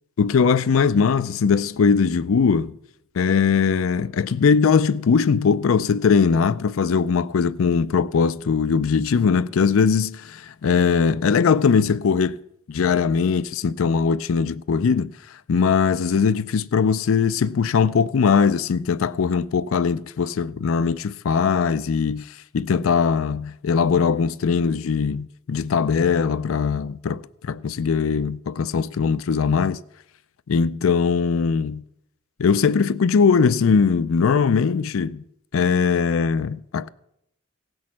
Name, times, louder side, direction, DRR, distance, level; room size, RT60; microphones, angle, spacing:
voice 1, 0.2-2.7 3.2-12.4 12.7-15.1 15.5-29.8 30.5-31.8 32.4-35.2 35.5-36.9, left 5 dB, 75° left, 0.4 m, -20 dB
17.0 x 6.3 x 7.4 m
head